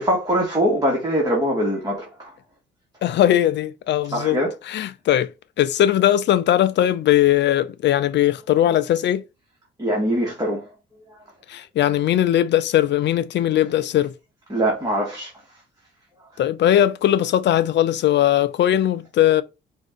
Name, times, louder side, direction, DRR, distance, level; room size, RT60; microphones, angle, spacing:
voice 1, 0.0-2.3 4.1-4.5 9.8-10.7 11.1-11.2 14.5-15.3, equal, 20° right, 1.9 m, -22 dB
voice 2, 3.0-4.4 4.7-5.3 5.6-9.2 11.5-14.1 16.4-19.4, left 12 dB, 65° left, 0.5 m, -19 dB
4.9 x 2.7 x 3.7 m
cardioid pair, 90°, 20 cm